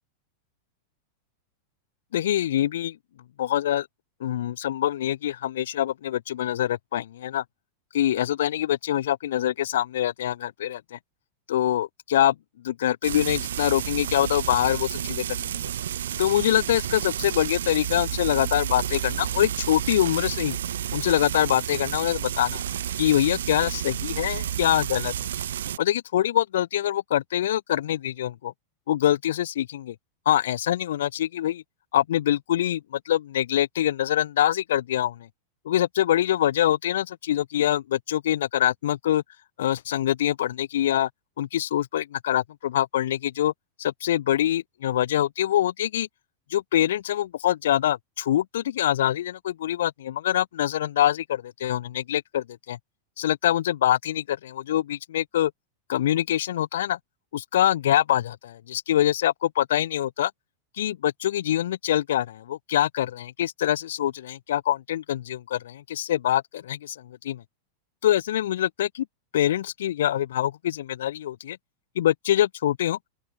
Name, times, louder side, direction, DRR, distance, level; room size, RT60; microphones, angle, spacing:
voice 1, 2.1-3.0 3.4-3.9 4.2-7.4 7.9-11.0 11.5-12.3 12.6-15.7 16.2-20.6 20.9-22.6 23.0-25.1 25.8-28.5 28.9-29.9 30.2-31.6 31.9-35.3 35.6-39.2 39.6-41.1 41.4-43.5 43.8-46.1 46.5-52.8 53.2-55.5 55.9-57.0 57.3-60.3 60.8-67.4 68.0-69.1 69.3-71.6 71.9-73.0, left 12 dB, 60° left, 4.6 m, -24 dB
Frying (food), 13.0-25.8, right 10 dB, 65° right, 5.7 m, -31 dB
open air
figure-of-eight pair, 90°, 0 cm